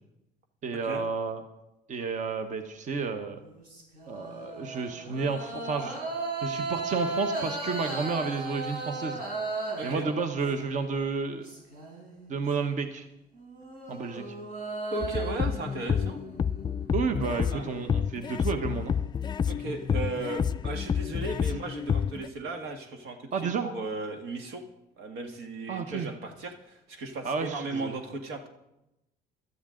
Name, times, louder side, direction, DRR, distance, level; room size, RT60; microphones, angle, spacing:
voice 1, 0.6-1.4 1.9-3.4 4.1-6.0 6.4-9.2 9.8-11.5 12.3-13.0 13.9-14.4 16.9-18.9 23.3-23.7 25.7-26.1 27.2-28.0, right 5 dB, 45° right, 7 dB, 1.1 m, -31 dB
sound 1, 3.3-10.8 11.2-12.4 13.4-17.3, right 3 dB, 65° right, 4.1 m, -36 dB
voice 2, 14.9-16.2 17.5-17.7 19.5-24.6 25.0-28.5, right 2 dB, 85° right, 5 dB, 1.7 m, -36 dB
sound 2, 15.0-22.3, left 7 dB, 25° left, 0.3 m, -29 dB
17.0 x 12.5 x 3.8 m, 0.90 s
cardioid pair, 110°, 17 cm